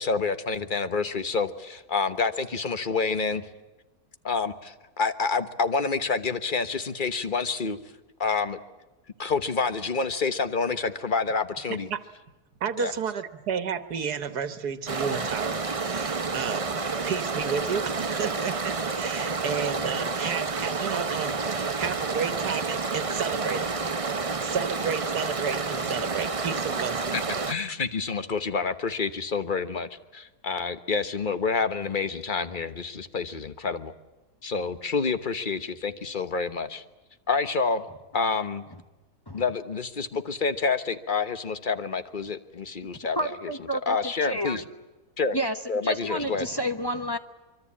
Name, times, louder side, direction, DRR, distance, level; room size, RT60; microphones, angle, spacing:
voice 1, 0.0-3.5 4.2-7.8 8.2-8.6 9.2-11.9 12.8-12.9 27.1-33.9 34.4-36.8 37.3-37.9 38.1-38.6 39.3-44.6 45.2-45.4 45.7-46.5, left 4 dB, 35° left, 11 dB, 1.2 m, -28 dB
voice 2, 12.6-16.8 17.0-23.8 24.4-27.2, right 7 dB, 85° right, 11 dB, 1.8 m, -32 dB
sound 1, 14.9-27.5, right 4 dB, 30° right, 0.7 m, -29 dB
voice 3, 43.2-44.0 44.2-44.7 45.3-45.5 45.8-47.2, equal, 15° left, 6 dB, 1.0 m, -30 dB
24.5 x 24.0 x 8.6 m, 1.1 s
omnidirectional pair, 1.6 m